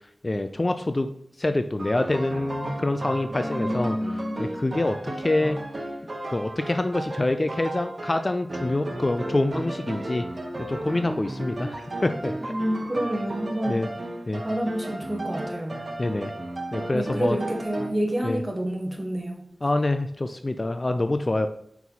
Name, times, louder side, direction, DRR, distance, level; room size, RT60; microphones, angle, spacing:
voice 1, 0.2-1.1 1.4-4.0 4.4-5.6 6.3-10.2 10.7-12.5 13.7-13.9 14.3-14.4 16.0-16.3 16.7-17.4 18.2-18.4 19.6-21.5, left 2 dB, 35° left, 9 dB, 0.4 m, -26 dB
sound 1, 1.8-17.9, right 1 dB, 50° right, 1.0 m, -34 dB
voice 2, 3.3-4.5 12.4-13.8 14.4-15.8 16.9-19.5, equal, 20° right, 2 dB, 1.3 m, -29 dB
5.3 x 4.6 x 4.1 m, 0.70 s
wide cardioid pair, 60°, 0 cm